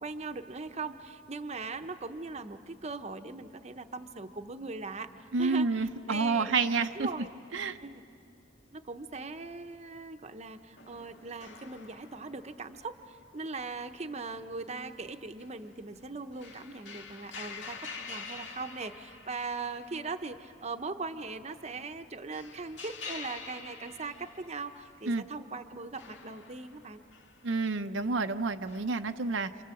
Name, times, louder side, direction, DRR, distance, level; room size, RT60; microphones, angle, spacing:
voice 1, 0.0-7.3 7.8-8.0 8.7-27.0, right 3 dB, 35° right, 7 dB, 0.8 m, -40 dB
voice 2, 5.3-7.1 7.5-7.8 25.1-25.2 27.4-29.6, right 4 dB, 80° right, 7 dB, 0.7 m, -29 dB
sound 1, 10.8-14.0 14.4-14.5 14.9-15.0 15.4-20.4 20.6-20.7 21.9-25.0 25.9-27.7 28.7-28.8, left 4 dB, 70° left, 2.0 m, -47 dB
27.5 x 27.5 x 7.7 m, 2.6 s
head